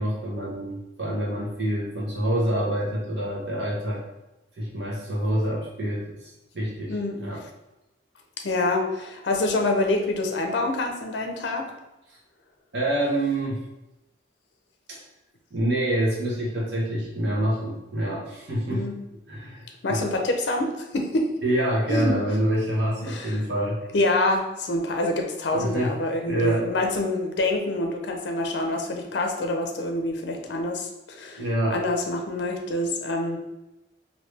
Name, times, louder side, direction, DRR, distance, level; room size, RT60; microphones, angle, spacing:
voice 1, 0.0-4.0 4.6-7.4 12.1-12.2 12.7-13.6 14.9-15.0 15.5-18.9 19.3-20.0 21.4-23.8 25.5-25.9 26.3-26.7 31.4-31.8, right 1 dB, 65° right, -5 dB, 0.9 m, -26 dB
voice 2, 8.4-11.7 18.7-19.0 19.8-21.3 21.9-22.1 23.0-23.4 23.9-33.4, left 2 dB, 65° left, 3 dB, 0.5 m, -26 dB
3.1 x 2.6 x 3.2 m, 0.97 s
head